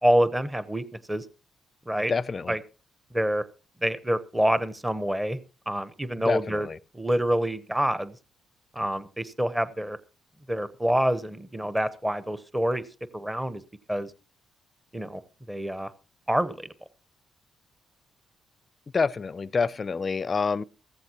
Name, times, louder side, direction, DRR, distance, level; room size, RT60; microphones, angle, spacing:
voice 1, 0.0-1.2 1.9-2.1 2.5-2.6 3.1-3.4 3.8-5.4 5.7-6.7 6.9-8.2 8.7-10.0 10.5-12.8 13.1-13.6 13.9-14.1 14.9-15.2 15.5-15.9 16.3-16.7, equal, 10° right, 0.9 m, -26 dB
voice 2, 2.1-2.6 6.3-6.8 18.9-20.6, left 5 dB, 35° left, 0.5 m, -27 dB
15.5 x 14.5 x 2.9 m
cardioid pair, 90°, 0 cm